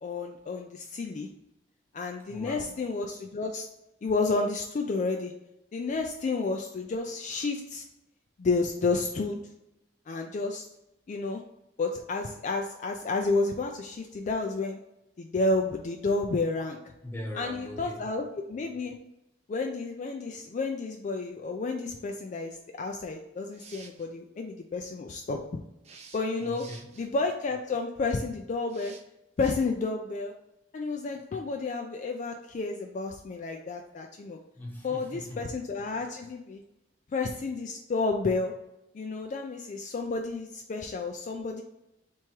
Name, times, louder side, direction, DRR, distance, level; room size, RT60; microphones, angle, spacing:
voice 1, 0.0-1.3 1.9-3.7 4.0-5.3 5.7-7.8 8.4-9.4 10.1-10.7 11.1-11.4 11.8-14.8 15.2-16.8 17.4-19.0 19.5-25.4 26.1-26.7 27.0-28.9 29.4-30.3 30.7-34.4 34.8-36.6 37.1-38.5 38.9-41.6, left 3 dB, 45° left, 3 dB, 0.3 m, -31 dB
voice 2, 2.3-2.8 17.0-18.0 26.4-26.8 34.5-35.5, left 1 dB, 10° left, -1 dB, 0.9 m, -40 dB
sound 1, 23.4-24.1 25.8-27.1 28.7-29.0 29.4-29.5, right 5 dB, 40° right, 0.5 m, -51 dB
3.5 x 3.0 x 4.4 m, 0.89 s
head